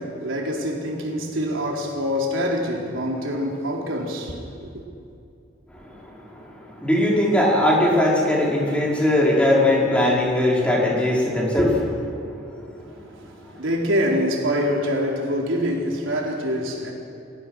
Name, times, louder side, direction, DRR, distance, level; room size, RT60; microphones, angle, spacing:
voice 1, 0.0-4.8 12.8-16.9, equal, 90° right, 4.3 m, -25 dB
voice 2, 5.7-13.0 13.4-13.5, left 1 dB, 5° left, 5.2 m, -21 dB
29.0 x 19.5 x 6.4 m
head